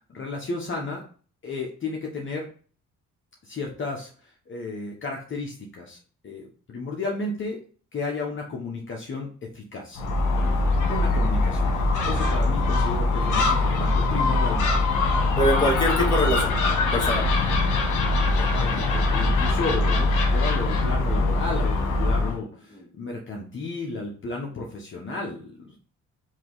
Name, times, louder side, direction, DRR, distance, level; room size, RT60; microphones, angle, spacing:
voice 1, 0.1-1.0 1.4-2.5 3.4-6.0 6.2-7.6 7.9-10.0 10.9-11.7 12.0-14.7 18.4-25.8, left 3 dB, 40° left, -1 dB, 1.1 m, -33 dB
Gull seagull, 9.9-22.4, left 2 dB, 80° left, 1.2 m, -22 dB
voice 2, 15.4-16.5 16.9-17.3 19.9-20.0 22.7-22.8, equal, 15° left, -2 dB, 1.8 m, -23 dB
4.6 x 2.9 x 3.9 m, 0.41 s
cardioid pair, 90°, 30 cm